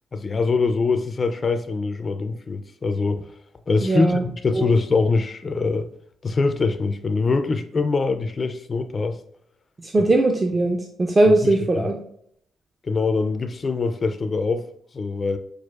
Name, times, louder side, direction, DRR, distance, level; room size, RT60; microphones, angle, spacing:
voice 1, 0.1-3.3 3.7-5.9 6.2-9.2 11.3-11.9 12.8-14.6 14.9-15.4, left 4 dB, 35° left, 0.3 m, -23 dB
voice 2, 3.8-4.2 4.6-4.7 9.8-12.0, right 2 dB, 25° right, 0.4 m, -19 dB
6.1 x 2.4 x 2.3 m
cardioid pair, 90°, 0 cm